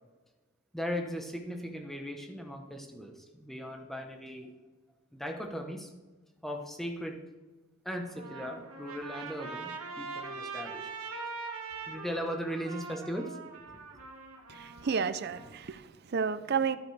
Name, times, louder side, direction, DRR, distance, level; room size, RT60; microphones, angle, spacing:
voice 1, 0.7-4.5 5.1-5.9 6.4-7.2 7.8-10.9 11.8-13.4, equal, ahead, 3 dB, 0.8 m, -38 dB
Trumpet, 8.0-15.5, right 4 dB, 80° right, 1.3 m, -42 dB
voice 2, 14.5-16.8, right 6 dB, 45° right, 13 dB, 0.4 m, -31 dB
12.0 x 9.4 x 3.3 m, 1.2 s
head